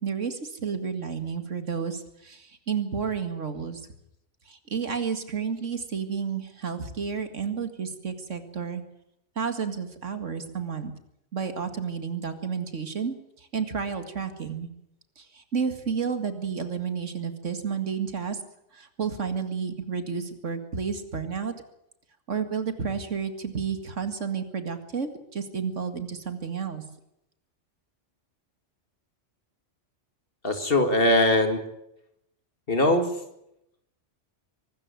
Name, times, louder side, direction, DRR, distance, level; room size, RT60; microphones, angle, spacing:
voice 1, 0.0-3.8 4.5-8.8 9.4-10.9 11.3-14.7 15.2-18.4 18.7-21.6 22.3-26.8, right 6 dB, 80° right, 8 dB, 2.3 m, -31 dB
voice 2, 30.4-31.6 32.7-33.1, left 1 dB, 50° left, 7 dB, 2.4 m, -21 dB
23.5 x 13.5 x 9.6 m, 0.81 s
omnidirectional pair, 1.2 m